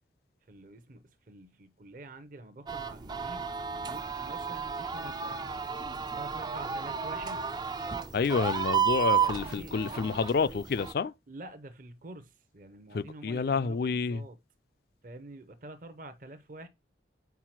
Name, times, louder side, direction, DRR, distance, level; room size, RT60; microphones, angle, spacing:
voice 1, 0.5-3.5 3.7-5.6 6.1-7.5 9.2-9.7 11.3-14.4 15.0-16.7, right 2 dB, 50° right, 0.7 m, -47 dB
sound 1, 2.7-10.9, right 7 dB, 25° right, 0.3 m, -32 dB
voice 2, 8.1-11.1 12.9-14.2, left 5 dB, 60° left, 0.4 m, -29 dB
4.7 x 4.4 x 5.8 m
head